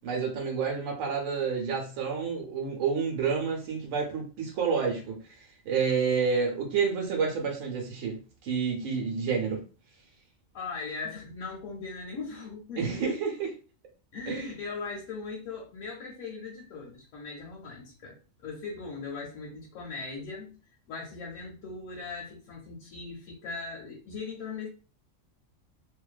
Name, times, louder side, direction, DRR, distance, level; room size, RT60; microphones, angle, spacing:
voice 1, 0.0-9.6 12.8-13.5 14.3-14.5, right 5 dB, 80° right, 0 dB, 1.0 m, -29 dB
voice 2, 10.5-13.1 14.1-20.6 20.9-24.7, left 4 dB, 85° left, -2 dB, 1.1 m, -39 dB
2.5 x 2.2 x 2.3 m, 0.35 s
omnidirectional pair, 1.3 m